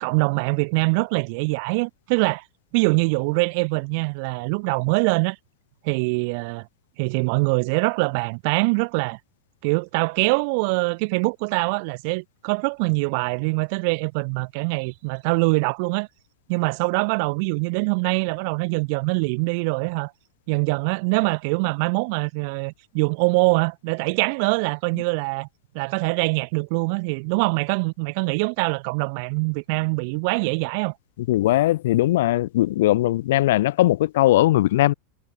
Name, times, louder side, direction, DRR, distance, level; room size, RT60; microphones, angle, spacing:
voice 1, 0.0-2.4 2.7-5.4 5.8-6.7 7.0-9.2 9.6-16.1 16.5-20.1 20.5-25.5 25.7-30.9, right 33 dB, 45° right, 0.8 m, -23 dB
voice 2, 31.3-34.9, left 15 dB, 55° left, 0.6 m, -19 dB
figure-of-eight pair, 90°, 0 cm